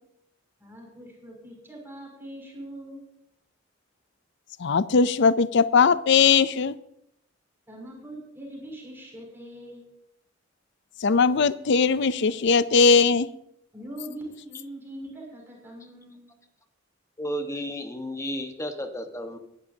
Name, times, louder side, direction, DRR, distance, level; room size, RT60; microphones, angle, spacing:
voice 1, 0.6-3.0 7.7-9.9 13.7-16.2, right 1 dB, 10° right, -2 dB, 6.3 m, -42 dB
voice 2, 4.6-6.8 11.0-13.3, left 5 dB, 60° left, 16 dB, 0.5 m, -19 dB
voice 3, 17.2-19.4, equal, 15° left, 6 dB, 1.4 m, -32 dB
22.5 x 12.5 x 2.8 m, 0.77 s
head